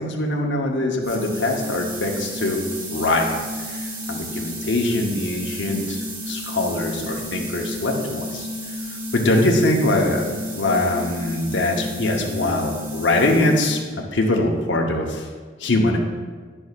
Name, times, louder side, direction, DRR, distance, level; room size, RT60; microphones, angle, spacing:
voice 1, 0.0-2.6 2.9-8.5 9.1-13.8 14.1-15.3 15.6-16.0, left 2 dB, 80° left, 1 dB, 0.9 m, -22 dB
sound 1, 1.0-13.9, left 1 dB, 50° right, 1.2 m, -32 dB
11.0 x 5.4 x 2.4 m, 1.5 s
head